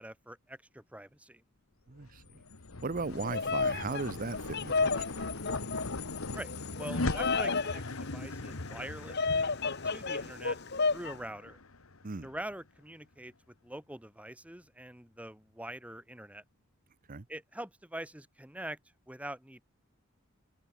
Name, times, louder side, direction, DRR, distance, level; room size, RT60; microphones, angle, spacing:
voice 1, 0.0-1.4 6.3-6.5 6.8-9.5 9.8-10.6 10.9-11.6 12.2-13.3 13.6-16.4 17.3-18.8 19.1-19.6, right 1 dB, 5° right, 2.7 m, -44 dB
voice 2, 1.9-2.4 2.8-5.3 12.0-12.3 17.1-17.2, right 3 dB, 40° right, 0.7 m, -37 dB
sound 1, 2.0-12.5, left 3 dB, 80° left, 1.6 m, -39 dB
Bird vocalization bird call bird song, 3.1-11.2, left 4 dB, 50° left, 1.8 m, -33 dB
head